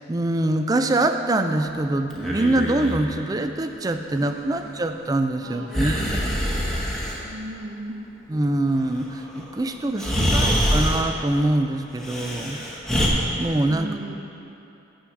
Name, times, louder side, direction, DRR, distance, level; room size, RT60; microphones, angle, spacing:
voice 1, 0.1-6.3 8.3-12.6 13.4-14.0, right 2 dB, 20° right, 7 dB, 0.3 m, -24 dB
Breathing, 2.1-3.0 5.7-7.2 9.4-9.5 10.0-11.1 12.0-13.1, equal, ahead, 1.0 m, -24 dB
voice 2, 4.2-4.7 5.4-6.1 7.2-8.0 10.0-10.6 13.7-14.2, right 1 dB, 75° right, 2 dB, 0.9 m, -37 dB
7.9 x 6.4 x 6.2 m, 2.9 s
head